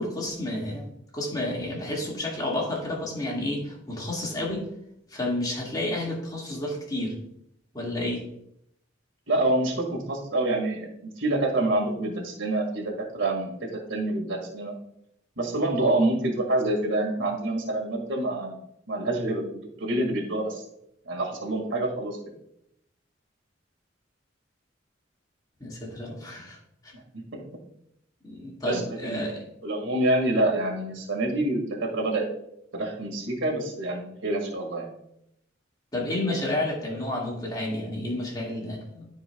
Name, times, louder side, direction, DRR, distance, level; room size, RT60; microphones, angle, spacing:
voice 1, 0.0-4.7 5.1-7.2 7.7-8.2 25.6-26.6 28.2-29.4 35.9-39.1, left 1 dB, 20° left, -3 dB, 1.9 m, -30 dB
voice 2, 9.3-14.7 15.4-18.6 18.9-20.6 21.1-22.2 26.9-27.4 28.6-29.4 29.6-32.3 32.7-34.9, right 2 dB, 85° right, 0 dB, 1.9 m, -27 dB
14.0 x 4.7 x 2.3 m, 0.76 s
head